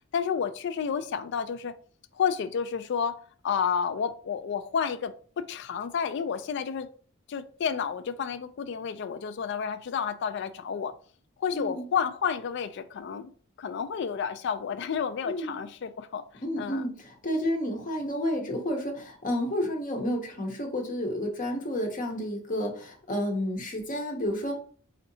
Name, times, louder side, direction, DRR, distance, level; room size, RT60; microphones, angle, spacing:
voice 1, 0.1-1.7 2.1-6.9 7.3-11.0 11.4-13.3 13.6-16.9, left 7 dB, 55° left, 0.3 m, -31 dB
voice 2, 11.5-11.8 15.2-15.6 16.4-24.6, equal, 40° left, 0.7 m, -31 dB
4.2 x 2.7 x 2.7 m
head